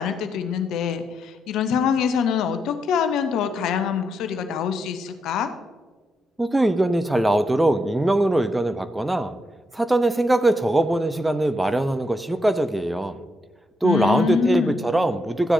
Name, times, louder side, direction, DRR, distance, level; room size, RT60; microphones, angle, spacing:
voice 1, 0.0-5.5 13.8-15.0, left 7 dB, 55° left, 8 dB, 0.9 m, -24 dB
voice 2, 6.4-9.3 9.7-13.2 13.8-15.5, right 1 dB, 10° right, 11 dB, 0.7 m, -21 dB
14.5 x 9.9 x 2.8 m, 1.4 s
figure-of-eight pair, 50°, 0 cm